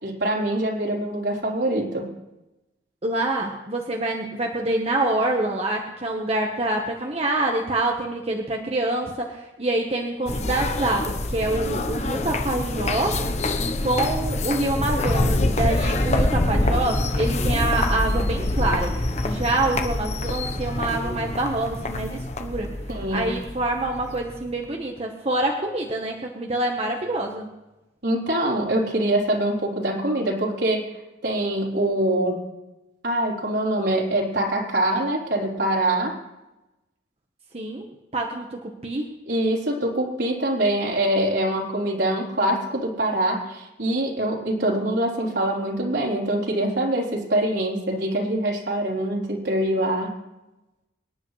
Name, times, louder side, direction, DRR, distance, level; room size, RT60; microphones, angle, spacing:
voice 1, 0.0-2.1 22.9-23.3 28.0-30.8 31.2-32.4 33.0-36.1 39.3-50.1, right 1 dB, 70° right, -3 dB, 3.7 m, -24 dB
voice 2, 3.0-13.2 13.8-19.0 19.2-22.7 23.1-27.5 37.5-37.9 38.1-39.1, right 2 dB, 35° right, 1 dB, 1.2 m, -26 dB
sound 1, 10.3-24.6, left 2 dB, 40° left, 0.9 m, -25 dB
25.0 x 10.5 x 3.3 m, 1.0 s
head